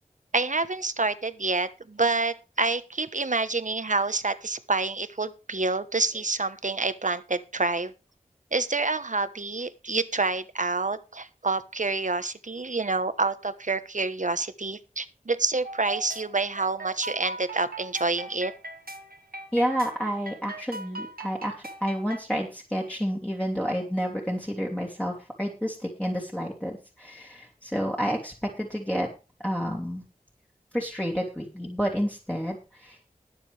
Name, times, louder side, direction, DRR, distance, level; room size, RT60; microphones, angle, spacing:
voice 1, 0.3-7.9 8.5-18.5, right 3 dB, 60° right, 12 dB, 1.2 m, -27 dB
sound 1, 15.6-22.2, right 2 dB, 85° right, 1.6 m, -40 dB
voice 2, 19.5-29.1 29.4-30.0 30.7-33.1, equal, 10° left, -2 dB, 3.0 m, -30 dB
20.5 x 7.1 x 3.4 m, 0.31 s
wide cardioid pair, 45°, 15 cm